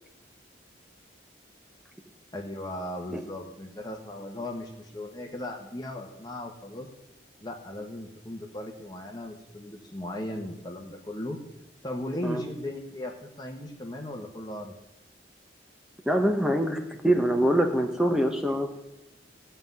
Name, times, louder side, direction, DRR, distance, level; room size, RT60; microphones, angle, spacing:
voice 1, 2.3-6.9 7.4-11.4 11.8-14.7, left 1 dB, 20° left, 1 dB, 1.3 m, -37 dB
voice 2, 16.1-18.8, equal, 5° right, 3 dB, 0.9 m, -24 dB
15.5 x 5.7 x 9.5 m, 0.95 s
head